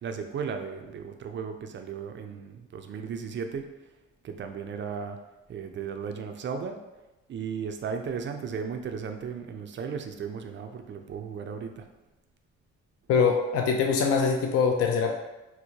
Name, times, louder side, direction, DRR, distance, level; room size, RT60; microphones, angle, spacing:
voice 1, 0.0-3.7 4.2-5.2 5.5-6.8 7.3-11.9, right 6 dB, 40° right, 6 dB, 0.4 m, -35 dB
voice 2, 13.1-15.2, left 5 dB, 55° left, 3 dB, 0.4 m, -23 dB
4.4 x 2.1 x 2.8 m, 1.0 s
cardioid pair, 90°, 30 cm